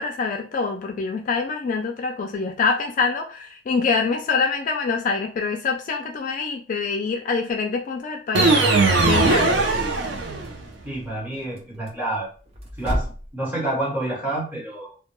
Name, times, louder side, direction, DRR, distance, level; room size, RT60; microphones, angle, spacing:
voice 1, 0.0-8.5 9.0-9.6, left 4 dB, 45° left, 3 dB, 0.3 m, -25 dB
sound 1, 8.3-10.7, right 3 dB, 85° right, 0.5 m, -19 dB
sound 2, 10.0-13.3, equal, 35° right, 0.5 m, -34 dB
voice 2, 10.8-12.3 12.8-14.9, right 1 dB, 10° right, -5 dB, 1.0 m, -28 dB
2.2 x 2.1 x 2.9 m, 0.39 s
head